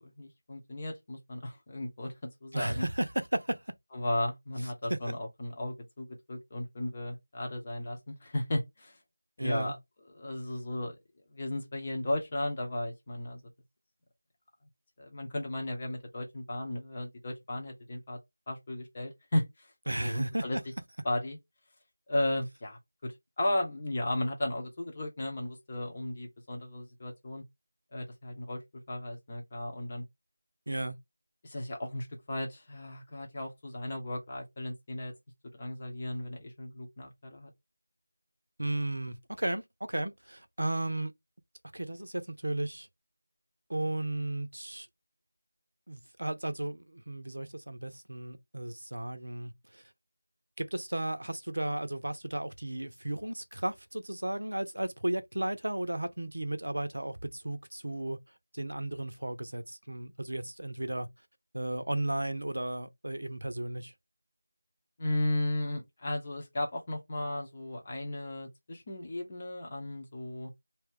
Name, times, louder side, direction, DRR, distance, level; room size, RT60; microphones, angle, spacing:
voice 1, 0.0-2.1 2.4-2.9 3.9-9.0 9.4-9.8 10.1-10.9 11.3-13.4 15.0-18.2 18.5-19.7 20.0-20.6 21.0-21.4 22.1-27.4 27.9-30.0 31.4-35.1 35.5-37.5 65.0-70.5, left 1 dB, 25° left, 0.9 m, -35 dB
voice 2, 2.5-3.7 4.9-5.1 9.4-9.8 19.9-20.6 30.7-31.0 38.6-41.1 41.7-42.9 43.7-44.9 45.9-49.8 50.6-58.2 58.5-61.1 61.5-63.9, right 1 dB, 70° right, 0.6 m, -34 dB
2.7 x 2.3 x 3.7 m
figure-of-eight pair, 170°, 0 cm